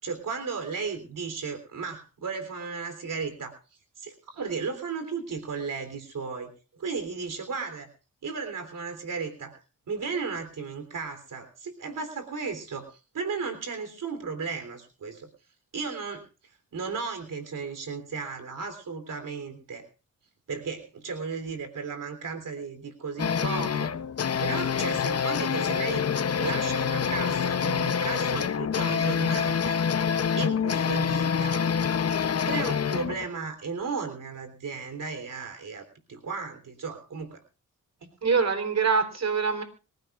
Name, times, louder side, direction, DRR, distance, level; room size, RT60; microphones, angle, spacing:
voice 1, 0.0-3.5 4.0-6.5 6.8-7.9 8.2-9.6 9.9-15.3 15.7-16.2 16.7-19.8 20.5-23.9 24.4-26.1 26.4-29.8 30.4-31.7 32.4-37.4, right 5 dB, 75° right, 8 dB, 3.5 m, -35 dB
sound 1, 23.2-33.3, left 7 dB, 50° left, 0.8 m, -26 dB
voice 2, 38.2-39.6, right 5 dB, 55° right, 8 dB, 3.8 m, -24 dB
25.5 x 15.5 x 2.5 m, 0.34 s
wide cardioid pair, 95°, 32 cm